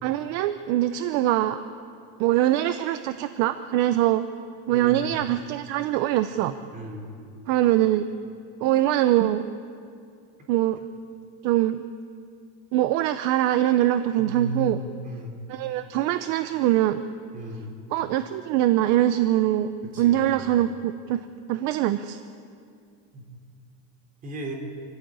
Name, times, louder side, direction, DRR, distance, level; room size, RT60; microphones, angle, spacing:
voice 1, 0.0-1.6 2.2-4.2 4.7-6.5 7.5-8.0 8.6-9.5 10.5-10.8 11.4-11.8 12.7-14.8 15.5-17.0 17.9-19.7 20.0-22.2, right 13 dB, 50° right, 11 dB, 0.7 m, -23 dB
voice 2, 4.7-5.2 6.7-7.1 14.2-14.8 15.0-15.4 17.3-17.7 19.8-20.5 23.1-23.2 24.2-24.5, right 2 dB, 25° right, 2 dB, 3.6 m, -35 dB
26.0 x 15.0 x 9.0 m, 2.4 s
cardioid pair, 170°, 34 cm